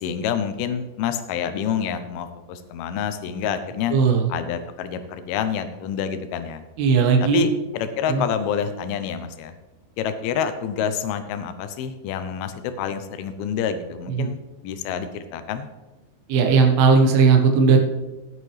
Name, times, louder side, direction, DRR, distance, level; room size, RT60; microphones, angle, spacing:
voice 1, 0.0-3.9 4.3-6.6 7.2-9.5 10.0-14.4 14.6-15.7, left 8 dB, 75° left, 10 dB, 2.5 m, -27 dB
voice 2, 3.9-4.3 6.8-7.4 8.1-8.2 14.2-14.3 16.3-17.8, right 5 dB, 75° right, 3 dB, 3.2 m, -17 dB
18.5 x 7.4 x 3.3 m, 1.1 s
omnidirectional pair, 4.8 m